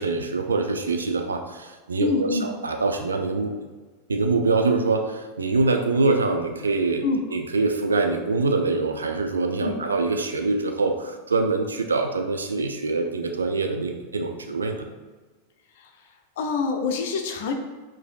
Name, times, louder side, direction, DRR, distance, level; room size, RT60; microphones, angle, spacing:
voice 1, 0.0-3.5 4.1-7.0 7.3-14.9, right 3 dB, 75° right, 4 dB, 0.4 m, -24 dB
voice 2, 2.0-2.5 7.0-7.2 9.6-9.7 15.8-15.9 16.4-17.5, left 4 dB, 55° left, 4 dB, 0.5 m, -25 dB
4.9 x 2.7 x 2.2 m, 1.3 s
figure-of-eight pair, 90°, 0 cm